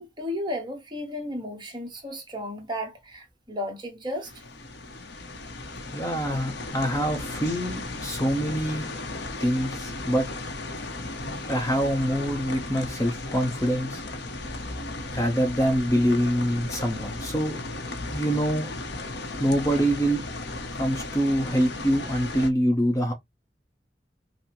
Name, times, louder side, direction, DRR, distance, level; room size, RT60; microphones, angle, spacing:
voice 1, 0.0-4.4, left 1 dB, 25° right, 1.1 m, -34 dB
sound 1, 4.2-22.5, left 2 dB, 75° left, 0.8 m, -35 dB
voice 2, 5.9-8.9 9.4-10.3 11.5-14.0 15.1-17.6 18.1-18.7 19.4-20.2 20.8-23.1, equal, 20° left, 0.7 m, -25 dB
5.4 x 2.1 x 2.9 m
head